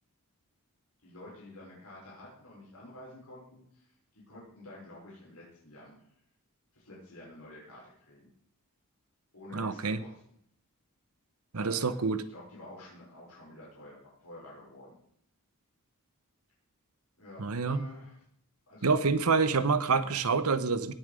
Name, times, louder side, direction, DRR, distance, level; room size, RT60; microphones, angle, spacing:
voice 1, 1.0-3.9 4.1-6.0 6.7-8.3 9.3-10.2 11.5-12.0 12.3-15.0 17.2-18.2 18.7-19.0 20.0-20.1, left 1 dB, 75° left, -5 dB, 5.7 m, -49 dB
voice 2, 9.5-10.0 11.5-12.2 17.4-17.9 18.8-20.9, right 4 dB, 80° right, 14 dB, 0.9 m, -27 dB
18.0 x 7.3 x 5.1 m, 0.67 s
head